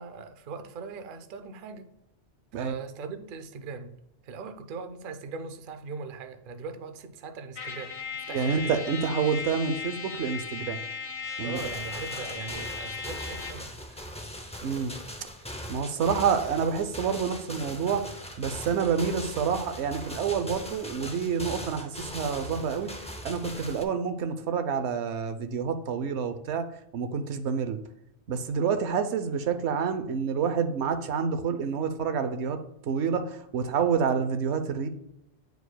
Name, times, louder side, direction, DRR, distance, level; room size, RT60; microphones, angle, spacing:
voice 1, 0.0-1.9 2.5-3.9 4.2-8.8 11.4-14.0, right 5 dB, 55° right, 8 dB, 0.7 m, -40 dB
Trumpet, 7.5-13.7, left 5 dB, 80° left, 1.3 m, -37 dB
voice 2, 8.3-10.8 11.4-11.6 14.6-14.9 15.7-18.0 18.4-22.9 23.2-26.6 26.9-27.8 28.3-34.9, right 6 dB, 85° right, 9 dB, 0.9 m, -28 dB
sound 1, 11.5-23.8, equal, 10° left, 0.3 m, -40 dB
9.2 x 4.7 x 2.2 m, 0.80 s
omnidirectional pair, 1.1 m